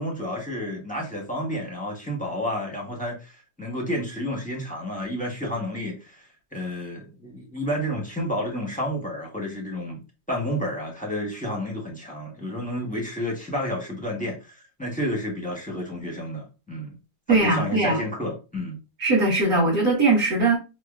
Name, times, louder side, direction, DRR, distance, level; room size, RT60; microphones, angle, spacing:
voice 1, 0.0-10.0 10.3-16.9 17.3-18.8, equal, 10° left, 0.6 m, -30 dB
voice 2, 17.3-18.0 19.0-20.6, right 3 dB, 55° right, 1.6 m, -20 dB
5.4 x 2.1 x 2.3 m
omnidirectional pair, 1.9 m